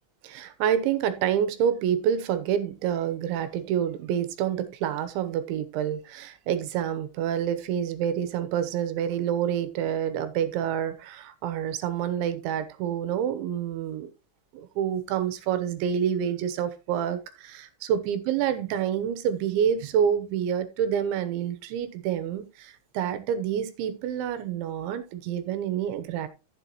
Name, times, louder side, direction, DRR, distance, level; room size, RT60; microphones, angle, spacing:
voice 1, 0.2-14.1 14.5-26.3, right 9 dB, 75° right, 3.1 m, -28 dB
13.5 x 7.6 x 3.0 m
omnidirectional pair, 5.9 m